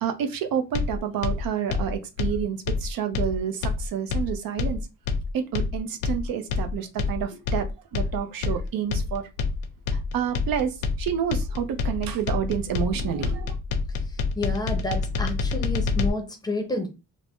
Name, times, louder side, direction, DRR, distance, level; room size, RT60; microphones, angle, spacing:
voice 1, 0.0-4.8 5.3-9.3 9.9-13.6, right 8 dB, 80° right, 0.6 m, -29 dB
sound 1, 0.7-16.1, left 4 dB, 90° left, 0.5 m, -27 dB
voice 2, 14.0-16.9, left 2 dB, 10° left, 0.5 m, -30 dB
2.4 x 2.0 x 3.5 m
cardioid pair, 145°, 34 cm